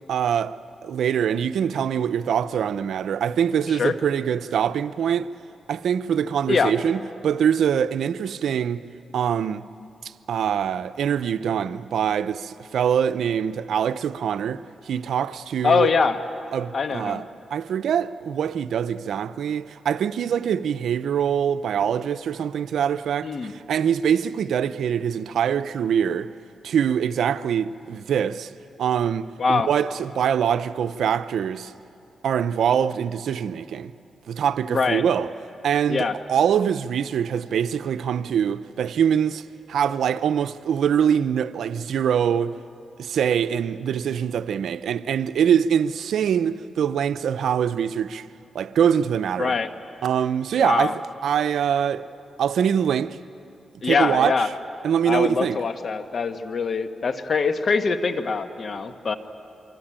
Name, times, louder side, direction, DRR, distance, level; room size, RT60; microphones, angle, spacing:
voice 1, 0.1-0.6 0.8-5.3 5.7-8.8 9.1-9.6 10.3-15.9 16.5-17.2 17.5-26.3 26.6-28.5 28.8-31.7 32.2-33.9 34.3-35.3 35.6-39.4 39.7-42.5 43.0-48.3 48.5-49.5 50.0-52.1 52.4-53.2 53.8-54.3 54.8-55.6, right 8 dB, 85° right, 0.6 m, -24 dB
voice 2, 15.6-16.2 16.7-17.2 23.2-23.5 29.4-29.7 34.7-35.0 35.9-36.2 49.4-49.7 50.6-50.9 53.8-54.5 55.0-59.2, left 4 dB, 55° left, 1.5 m, -23 dB
25.0 x 24.5 x 8.9 m
cardioid pair, 80°, 0 cm